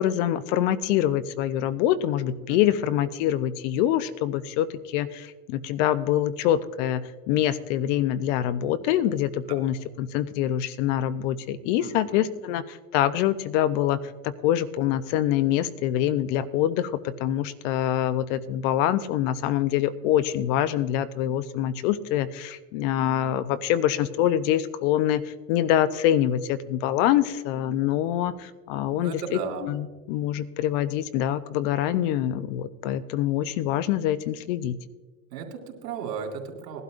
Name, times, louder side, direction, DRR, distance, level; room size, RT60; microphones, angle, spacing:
voice 1, 0.0-14.0 14.2-29.2 29.6-34.8, left 11 dB, 50° left, 15 dB, 0.7 m, -25 dB
voice 2, 11.8-12.2 29.0-29.7 35.3-36.8, right 6 dB, 80° right, 2 dB, 2.9 m, -35 dB
19.5 x 12.0 x 2.5 m, 1.2 s
hypercardioid pair, 115°, 48 cm